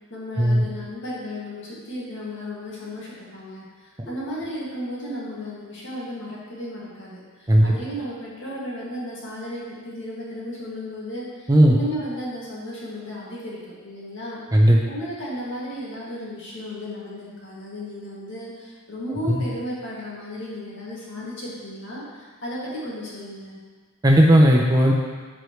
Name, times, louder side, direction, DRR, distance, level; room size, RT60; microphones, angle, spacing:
voice 1, 0.1-13.6 13.8-23.6, equal, 55° left, -7 dB, 2.3 m, -34 dB
voice 2, 24.0-24.9, equal, 15° right, -1 dB, 0.6 m, -15 dB
12.5 x 4.9 x 3.2 m, 1.4 s
head